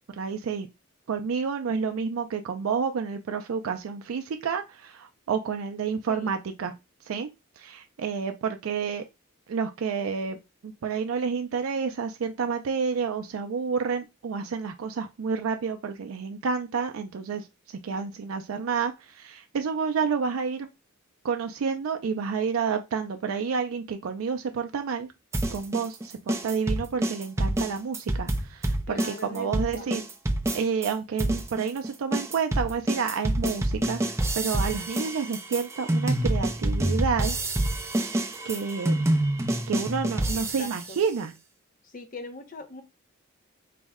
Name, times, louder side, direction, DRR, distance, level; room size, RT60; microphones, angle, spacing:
voice 1, 0.2-0.7 1.1-6.8 7.1-7.3 7.6-9.0 9.5-10.4 10.6-17.5 17.8-20.7 21.2-25.1 25.5-30.0 30.5-37.4 38.4-39.0 39.7-41.3, right 6 dB, 85° right, 0.4 m, -29 dB
voice 2, 1.7-2.0 6.1-6.4 28.9-29.9 40.3-41.0 41.8-42.8, left 3 dB, 40° left, 0.6 m, -42 dB
sound 1, 25.3-30.9 31.2-40.9, right 1 dB, 15° right, 0.4 m, -27 dB
4.1 x 2.1 x 3.5 m
head